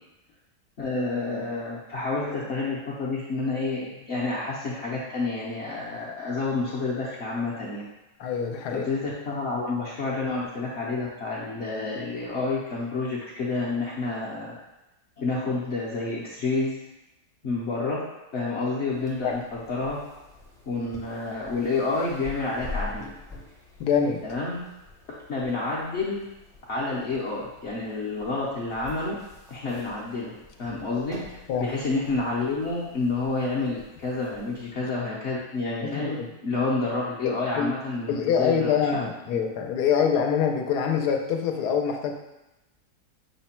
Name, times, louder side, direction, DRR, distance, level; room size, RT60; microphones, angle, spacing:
voice 1, 0.8-7.8 8.7-14.5 15.2-16.9 17.4-18.0 18.3-20.0 20.7-23.1 24.2-24.6 25.3-26.2 26.7-29.1 29.5-30.3 30.6-39.0 39.3-39.5, left 3 dB, 55° left, -6 dB, 0.8 m, -29 dB
voice 2, 8.2-8.8 19.2-19.4 23.8-24.2 31.5-31.7 35.8-36.3 37.2-37.7 38.1-42.1, left 7 dB, 85° left, 3 dB, 1.2 m, -25 dB
sound 1, 18.9-34.7, left 3 dB, 5° left, 0.3 m, -45 dB
5.7 x 2.2 x 4.2 m, 0.97 s
omnidirectional pair, 1.7 m